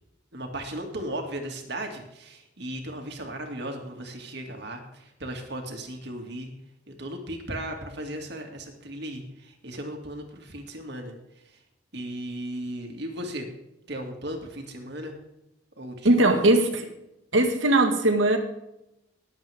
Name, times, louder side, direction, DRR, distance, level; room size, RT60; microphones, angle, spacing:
voice 1, 0.3-6.5 6.9-11.1 11.9-13.5 13.9-15.1 15.8-16.1, right 1 dB, 55° right, 3 dB, 2.3 m, -36 dB
voice 2, 16.0-16.9 17.3-18.4, right 1 dB, 70° right, 5 dB, 1.9 m, -20 dB
20.0 x 8.2 x 3.6 m, 0.87 s
head